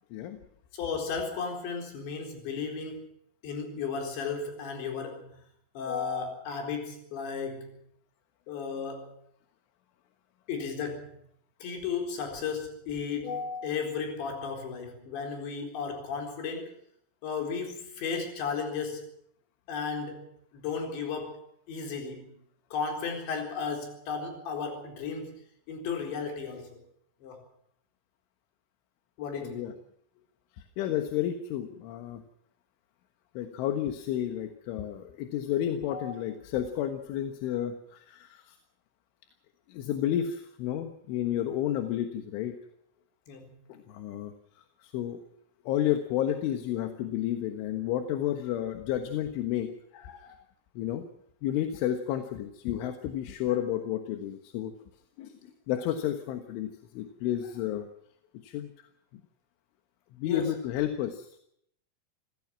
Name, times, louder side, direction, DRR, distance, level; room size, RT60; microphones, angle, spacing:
voice 1, 0.7-3.1 3.4-5.4 5.7-7.8 8.5-9.2 10.5-11.2 11.6-16.7 17.2-19.1 19.7-21.4 21.7-22.4 22.7-26.8 27.2-27.4 29.2-29.7 35.9-36.1 43.3-43.5 60.3-60.5, left 5 dB, 70° left, 3 dB, 6.4 m, -34 dB
voice 2, 29.4-29.7 30.8-32.2 33.4-38.6 39.7-42.6 43.7-44.3 44.8-45.2 45.7-50.4 50.8-51.0 51.4-54.7 55.2-55.3 55.7-57.9 58.4-58.7 60.2-61.4, left 11 dB, 90° left, 7 dB, 3.9 m, -31 dB
26.5 x 17.0 x 6.0 m, 0.71 s
omnidirectional pair, 5.4 m